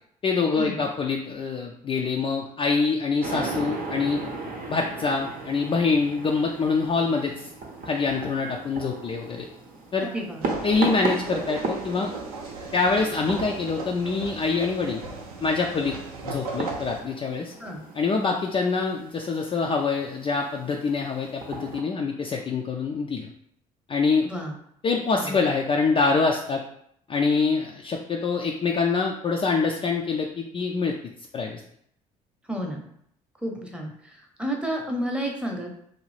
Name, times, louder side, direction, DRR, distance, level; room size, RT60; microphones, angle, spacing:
voice 1, 0.2-4.2 4.7-7.5 7.8-9.5 9.9-10.1 10.6-12.1 12.7-15.0 15.4-16.0 16.2-17.5 18.0-23.3 23.9-24.3 24.8-26.6 27.1-31.0 31.3-31.6, left 4 dB, 30° left, 0 dB, 0.4 m, -25 dB
sound 1, 3.2-21.8, right 3 dB, 50° right, 0.7 m, -36 dB
voice 2, 10.0-10.5 17.6-17.9 24.2-24.6 25.2-25.4 32.5-32.8 33.4-35.8, right 1 dB, 5° right, 1 dB, 0.8 m, -31 dB
sound 2, 10.4-17.0, right 3 dB, 90° right, 0.5 m, -37 dB
2.6 x 2.3 x 3.2 m, 0.70 s
hypercardioid pair, 55°, 18 cm